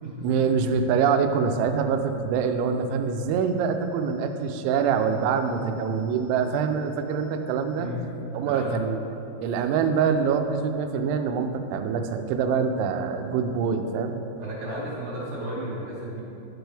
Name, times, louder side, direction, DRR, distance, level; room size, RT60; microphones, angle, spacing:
voice 1, 0.2-7.9 8.3-9.0 9.4-14.2, right 6 dB, 85° right, 6 dB, 3.0 m, -25 dB
voice 2, 14.4-16.2, right 1 dB, 70° right, -7 dB, 2.5 m, -33 dB
12.0 x 6.2 x 3.4 m, 2.8 s
omnidirectional pair, 5.3 m